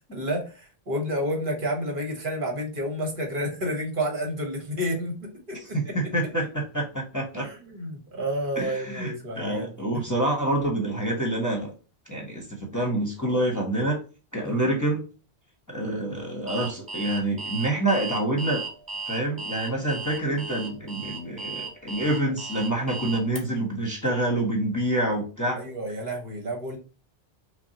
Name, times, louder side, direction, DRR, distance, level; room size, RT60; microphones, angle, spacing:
voice 1, 0.1-5.8 7.3-10.0 14.4-14.6 25.5-26.8, equal, 55° right, 1 dB, 1.3 m, -30 dB
voice 2, 5.5-7.5 8.6-11.7 12.1-14.0 14.3-15.0 15.7-18.7 19.1-25.6, right 1 dB, 20° left, 0 dB, 0.9 m, -27 dB
Alarm, 16.5-23.4, right 4 dB, 20° right, 0.9 m, -35 dB
5.6 x 2.1 x 2.8 m, 0.36 s
omnidirectional pair, 1.1 m